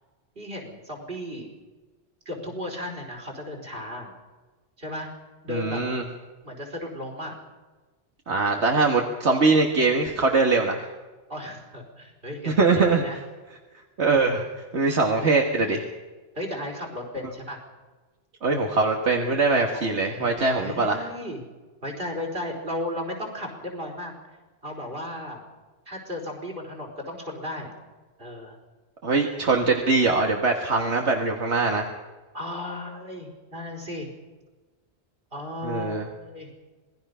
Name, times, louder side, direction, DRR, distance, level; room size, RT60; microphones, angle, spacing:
voice 1, 0.3-1.5 2.2-4.1 4.8-5.1 5.4-5.8 6.4-7.4 11.3-13.2 16.3-17.6 19.7-20.4 20.6-21.4 21.8-24.1 24.6-25.4 25.9-27.7 28.2-28.6 32.3-34.1 35.3-36.5, left 1 dB, 55° right, 2 dB, 4.9 m, -35 dB
voice 2, 5.5-6.1 8.3-10.9 12.5-13.0 14.0-14.5 14.7-15.9 18.4-21.1 29.0-31.9 35.6-36.1, right 3 dB, 80° right, 2 dB, 2.0 m, -22 dB
26.5 x 20.0 x 5.7 m, 1.3 s
omnidirectional pair, 1.1 m